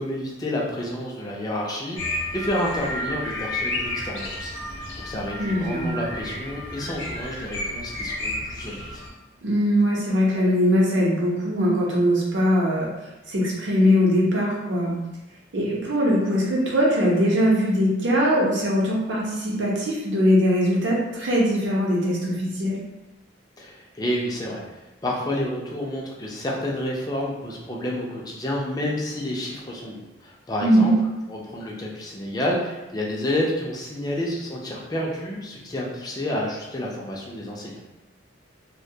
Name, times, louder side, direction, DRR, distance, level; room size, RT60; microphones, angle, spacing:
voice 1, 0.0-9.0 23.6-30.9 31.3-37.8, left 1 dB, 20° left, -2 dB, 0.4 m, -29 dB
sound 1, 2.0-9.1, left 1 dB, 80° left, 0.5 m, -31 dB
voice 2, 5.4-5.9 9.4-12.9 13.3-15.0 15.5-22.8 30.6-30.9, equal, 70° right, -4 dB, 0.7 m, -21 dB
2.2 x 2.2 x 2.6 m, 1.0 s
head